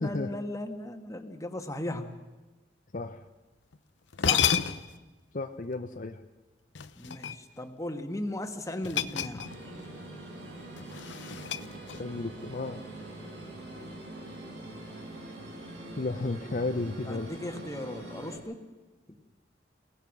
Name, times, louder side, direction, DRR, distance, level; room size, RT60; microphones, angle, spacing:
voice 1, 0.0-2.2 4.2-4.5 7.0-9.5 17.0-18.6 19.1-19.2, left 1 dB, 20° left, 6 dB, 1.6 m, -37 dB
voice 2, 2.9-3.2 5.3-6.2 12.0-12.8 16.0-17.3, left 2 dB, 45° left, 6 dB, 0.7 m, -33 dB
sound 1, 3.7-3.8 4.1-5.0 6.7-7.7 8.8-9.8 10.1-10.3 10.8-12.2, left 8 dB, 85° left, 0.8 m, -31 dB
sound 2, 9.4-18.4, right 1 dB, 90° right, 7.8 m, -44 dB
29.0 x 17.5 x 6.1 m, 1.2 s
head